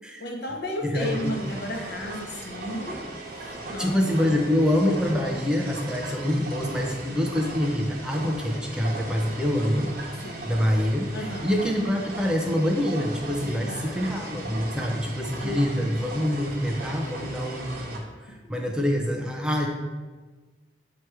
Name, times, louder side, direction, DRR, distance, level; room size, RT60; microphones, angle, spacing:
voice 1, 0.2-3.0 3.3-4.0 10.2-10.5 11.1-11.5 13.4-14.3 15.4-15.9 18.3-18.4, left 1 dB, 65° left, 1 dB, 0.9 m, -34 dB
sound 1, 1.0-18.0, right 2 dB, 55° right, 1.1 m, -38 dB
voice 2, 3.8-9.9 10.4-19.7, left 1 dB, 5° right, 0 dB, 0.6 m, -26 dB
7.6 x 3.0 x 4.7 m, 1.3 s
head